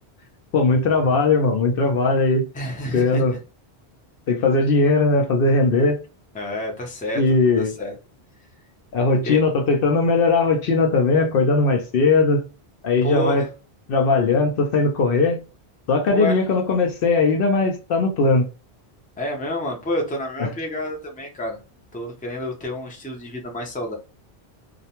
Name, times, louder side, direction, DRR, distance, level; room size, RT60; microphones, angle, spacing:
voice 1, 0.5-2.5 2.9-3.4 4.3-6.0 7.1-7.7 8.9-12.4 12.8-13.4 13.9-15.4 15.9-18.5 20.4-20.5, left 3 dB, 65° left, 0.7 m, -19 dB
voice 2, 2.5-3.2 6.3-7.2 7.6-7.9 9.2-9.4 13.0-13.5 16.1-16.5 19.2-21.6 21.9-23.9, equal, 10° left, 0.5 m, -29 dB
2.5 x 2.2 x 2.8 m
omnidirectional pair, 1.1 m